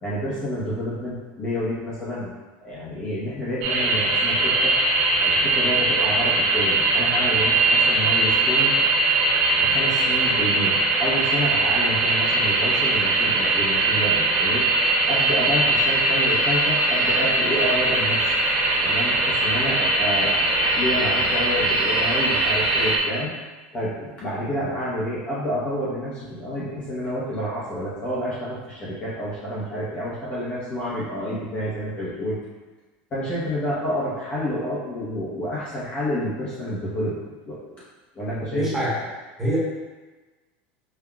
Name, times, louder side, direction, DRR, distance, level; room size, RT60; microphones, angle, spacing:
voice 1, 0.0-2.3 2.6-4.8 5.2-8.7 9.6-14.6 15.1-18.3 18.8-23.3 23.7-32.4 33.1-37.2 37.5-37.7 38.1-38.8, equal, 25° left, -8 dB, 0.8 m, -29 dB
sound 1, 3.6-23.0, right 2 dB, 75° right, 0.8 m, -21 dB
voice 2, 38.5-39.0 39.4-39.6, equal, 5° right, -9 dB, 1.1 m, -24 dB
5.5 x 2.2 x 2.3 m, 1.2 s
supercardioid pair, 160°, 5 cm